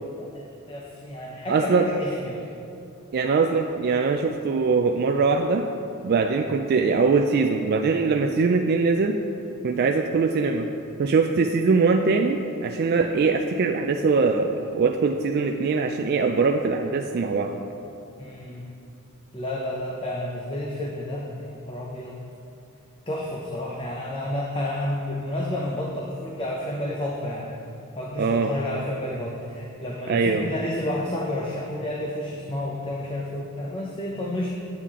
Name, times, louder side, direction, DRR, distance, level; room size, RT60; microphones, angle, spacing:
voice 1, 0.2-2.5 18.2-18.7 19.3-22.2 23.1-27.5 28.0-34.5, left 1 dB, 25° left, -2 dB, 0.6 m, -31 dB
voice 2, 1.5-1.9 3.1-5.7 6.0-9.2 9.6-10.7 11.0-17.6 28.2-28.5 30.1-30.5, right 4 dB, 45° right, 4 dB, 0.3 m, -22 dB
8.3 x 7.5 x 3.6 m, 2.6 s
head